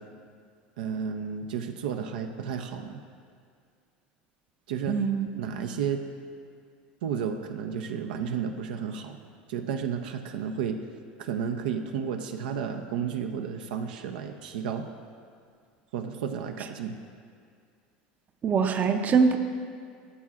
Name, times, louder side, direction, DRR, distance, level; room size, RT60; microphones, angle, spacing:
voice 1, 0.8-3.0 4.7-5.0 5.4-6.0 7.0-9.2 9.5-10.8 11.2-14.9 15.9-17.0, right 7 dB, 80° right, 5 dB, 0.5 m, -32 dB
voice 2, 4.9-5.3 18.4-19.4, right 5 dB, 35° right, 7 dB, 0.6 m, -23 dB
13.5 x 7.4 x 2.4 m, 2.2 s
hypercardioid pair, 95°, 5 cm